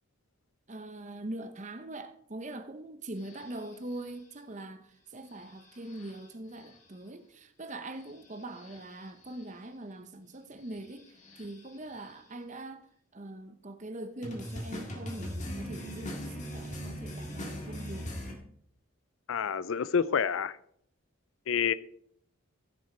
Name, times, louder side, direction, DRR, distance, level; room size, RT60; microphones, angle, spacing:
voice 1, 0.7-12.9 13.1-18.1, right 1 dB, 35° right, 0.8 m, -42 dB
sound 1, 3.2-4.1 5.4-6.3 6.6-6.8 8.0-9.4 10.7-12.1 14.2-18.3, equal, 35° left, 1.8 m, -41 dB
voice 2, 19.3-20.6 21.5-21.7, left 7 dB, 65° left, 0.4 m, -28 dB
15.0 x 6.3 x 4.4 m
head